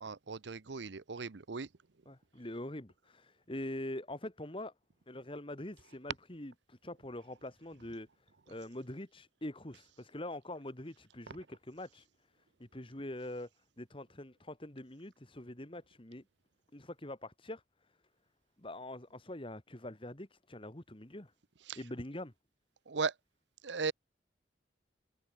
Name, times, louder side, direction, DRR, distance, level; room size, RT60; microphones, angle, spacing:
voice 1, 0.0-1.7 21.7-21.8 22.9-23.1 23.6-23.9, right 4 dB, 75° right, 0.8 m, -37 dB
voice 2, 2.1-4.7 5.1-8.1 8.5-12.1 12.6-13.5 13.8-16.2 16.7-17.6 18.6-21.3 21.8-22.3, left 1 dB, 30° left, 2.1 m, -44 dB
head